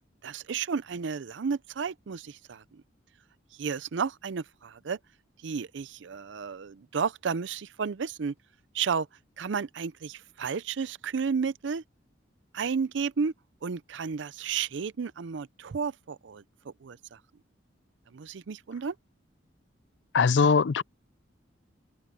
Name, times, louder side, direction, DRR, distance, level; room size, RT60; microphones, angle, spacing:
voice 1, 0.2-2.8 3.6-5.0 5.4-8.3 8.7-9.1 9.4-11.8 12.5-13.3 13.6-17.2 18.1-18.9, right 6 dB, 70° right, 0.5 m, -32 dB
voice 2, 20.1-20.8, left 5 dB, 65° left, 0.4 m, -21 dB
open air
head